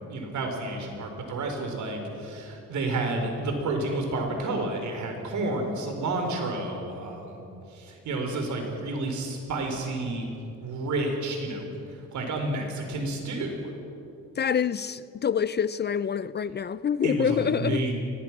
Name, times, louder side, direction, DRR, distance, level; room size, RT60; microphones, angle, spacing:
voice 1, 0.1-7.4 7.7-10.3 10.6-13.7 17.0-17.9, right 2 dB, 70° right, 4.3 m, -30 dB
voice 2, 14.4-17.8, left 7 dB, 35° left, 0.5 m, -26 dB
23.0 x 18.5 x 6.1 m
cardioid pair, 90°, 30 cm